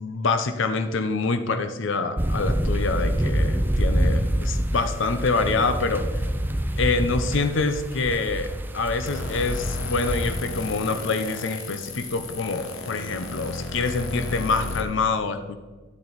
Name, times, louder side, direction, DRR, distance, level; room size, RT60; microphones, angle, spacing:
voice 1, 0.0-6.0 6.8-8.5 8.7-15.6, left 3 dB, 65° left, 9 dB, 0.6 m, -26 dB
sound 1, 2.2-10.3, right 1 dB, 10° right, 0.5 m, -26 dB
sound 2, 9.1-14.8, left 3 dB, 80° left, 1.2 m, -33 dB
11.5 x 7.0 x 4.0 m, 1.3 s
head